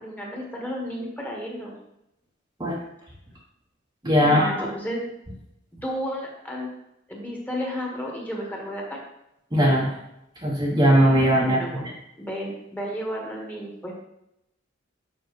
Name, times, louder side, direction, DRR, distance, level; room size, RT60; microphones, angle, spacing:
voice 1, 0.0-1.7 4.2-5.0 5.8-6.7 7.1-9.0 11.4-11.9 12.2-13.9, equal, 10° left, -2 dB, 1.4 m, -32 dB
voice 2, 4.0-4.7 9.5-9.9 10.4-11.6, equal, 20° right, -3 dB, 0.9 m, -19 dB
6.9 x 5.7 x 3.1 m, 0.84 s
head